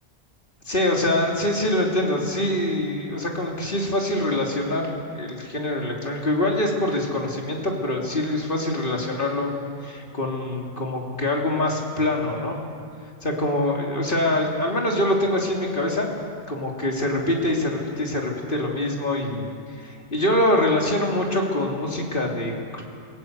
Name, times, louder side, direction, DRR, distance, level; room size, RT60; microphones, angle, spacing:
voice 1, 0.6-9.5 9.8-12.6 13.2-16.1 16.5-19.5 19.8-22.8, left 1 dB, 55° left, 0 dB, 3.1 m, -24 dB
28.0 x 16.5 x 8.1 m, 2.3 s
omnidirectional pair, 1.1 m